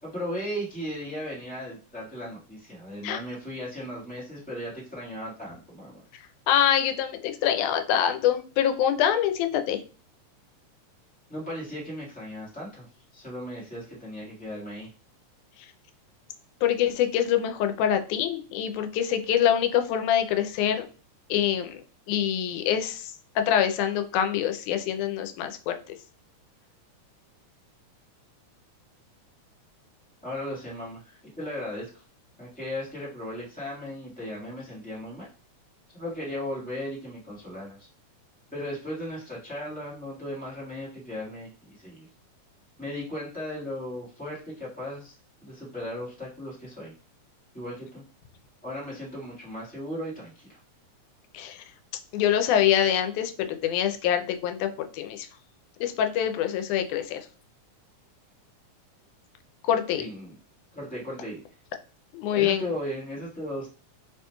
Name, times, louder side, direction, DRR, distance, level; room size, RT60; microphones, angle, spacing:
voice 1, 0.0-6.0 11.3-12.9 13.1-14.9 30.2-32.0 32.4-35.3 35.9-37.9 38.5-42.1 42.8-45.1 45.4-46.9 47.5-48.0 48.6-50.6 60.0-60.3 60.7-61.4 62.3-63.7, equal, 10° left, -7 dB, 0.4 m, -36 dB
voice 2, 6.5-9.8 16.6-20.8 21.3-21.8 22.1-23.1 23.4-25.8 51.3-51.6 52.1-55.3 55.8-57.2 59.7-60.1 62.1-62.6, left 10 dB, 90° left, 7 dB, 2.0 m, -25 dB
4.6 x 2.9 x 2.2 m, 0.37 s
omnidirectional pair, 3.4 m